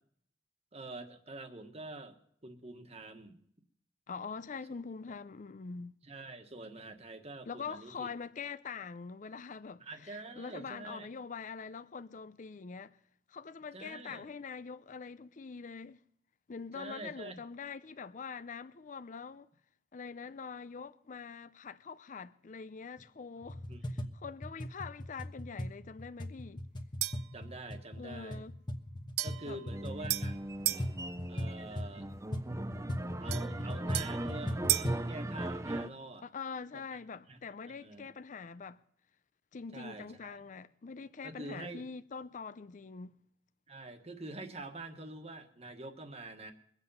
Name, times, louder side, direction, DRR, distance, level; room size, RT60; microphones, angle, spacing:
voice 1, 0.7-2.2 2.4-3.4 6.0-8.1 9.8-11.1 13.7-14.3 16.7-17.4 23.7-24.0 27.3-28.4 29.2-30.4 31.3-32.1 33.2-36.2 36.7-36.8 37.3-37.4 37.8-38.1 39.7-40.4 41.2-41.8 43.7-46.5, right 2 dB, 35° right, 1.4 m, -46 dB
voice 2, 4.1-5.9 7.5-13.0 13.3-16.0 16.5-19.5 19.9-26.6 28.0-28.5 29.4-29.6 36.2-38.8 39.5-43.1, left 5 dB, 45° left, 0.5 m, -44 dB
sound 1, 23.4-35.1, left 1 dB, 25° left, 1.1 m, -39 dB
sound 2, 27.0-27.4 29.2-30.9 33.3-35.0, right 14 dB, 65° right, 0.6 m, -35 dB
sound 3, 29.7-35.9, right 1 dB, 15° right, 0.5 m, -39 dB
22.5 x 8.0 x 5.6 m
head